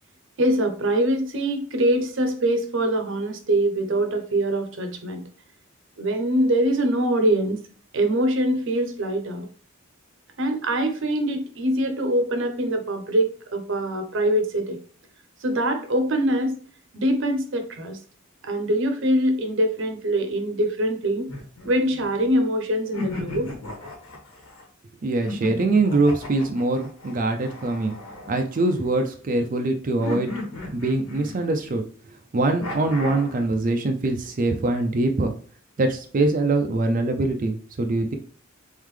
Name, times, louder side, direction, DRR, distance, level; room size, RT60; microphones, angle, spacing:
voice 1, 0.4-5.2 6.0-7.6 7.9-9.5 10.4-14.8 15.4-16.6 16.9-18.0 18.4-21.3 21.6-23.5, right 1 dB, 60° right, 6 dB, 0.8 m, -23 dB
sound 1, 21.3-22.3 22.9-24.6 25.2-29.0 30.0-31.8 32.6-33.4, left 2 dB, 75° left, 1.4 m, -35 dB
voice 2, 25.0-27.9 28.3-30.3 30.7-31.9 32.3-35.3 35.8-38.1, right 2 dB, 40° right, 5 dB, 0.4 m, -23 dB
3.7 x 3.6 x 3.2 m, 0.43 s
head